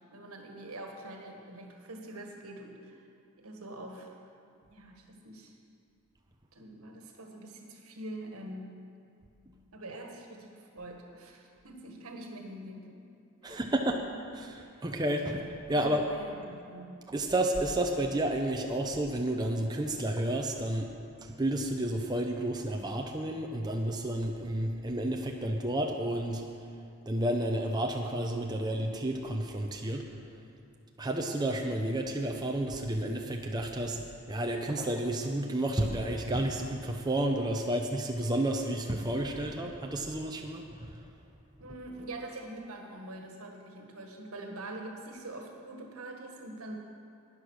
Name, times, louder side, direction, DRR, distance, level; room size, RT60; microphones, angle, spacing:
voice 1, 0.0-3.0 3.4-4.1 4.7-5.5 6.5-8.8 9.7-13.1 13.4-13.6 14.8-14.9 15.2-15.4 15.7-17.1 41.6-46.8, right 1 dB, 80° right, 2 dB, 1.6 m, -44 dB
voice 2, 13.4-14.0 14.3-15.4 15.7-16.0 17.1-20.9 21.2-26.4 27.1-30.1 31.0-41.0, right 1 dB, 20° right, 2 dB, 0.6 m, -31 dB
11.0 x 9.9 x 6.4 m, 2.4 s
head